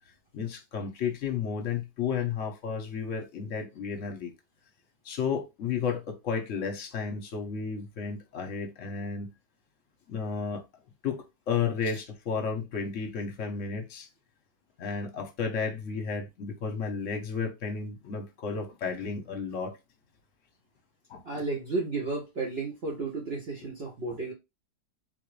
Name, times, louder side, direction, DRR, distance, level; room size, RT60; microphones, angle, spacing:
voice 1, 0.3-4.3 5.0-9.3 10.1-10.6 11.0-14.1 14.8-19.7 21.1-21.4, left 6 dB, 55° left, 1.1 m, -32 dB
voice 2, 21.2-24.3, right 3 dB, 45° right, 0.9 m, -33 dB
3.9 x 2.5 x 3.1 m
omnidirectional pair, 1.7 m